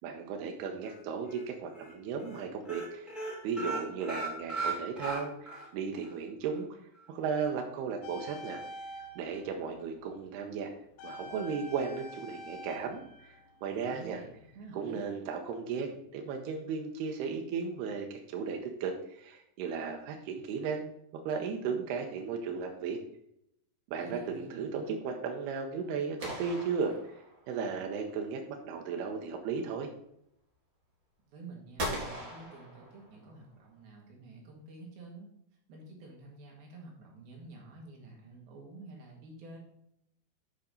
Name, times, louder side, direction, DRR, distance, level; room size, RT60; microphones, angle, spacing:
voice 1, 0.0-3.1 3.4-6.8 7.1-8.6 9.2-10.7 11.0-13.3 13.6-14.2 14.7-20.9 21.2-23.0 23.9-27.0 27.5-29.9, right 5 dB, 85° right, 3 dB, 2.9 m, -35 dB
sound 1, 0.8-1.4 1.7-1.9 2.2-2.4 2.6-5.7 6.0-6.1 6.5-6.6, right 3 dB, ahead, 1.7 m, -37 dB
sound 2, 8.0-10.1 11.0-14.1 14.4-14.5, equal, 75° left, 2.8 m, -46 dB
voice 2, 13.7-15.1 23.9-25.0 31.3-35.3 35.7-39.6, right 3 dB, 70° right, -1 dB, 3.6 m, -50 dB
sound 3, 26.2-27.7 31.8-33.4, equal, 35° right, 1.3 m, -39 dB
8.3 x 5.0 x 5.3 m, 0.75 s
omnidirectional pair, 4.6 m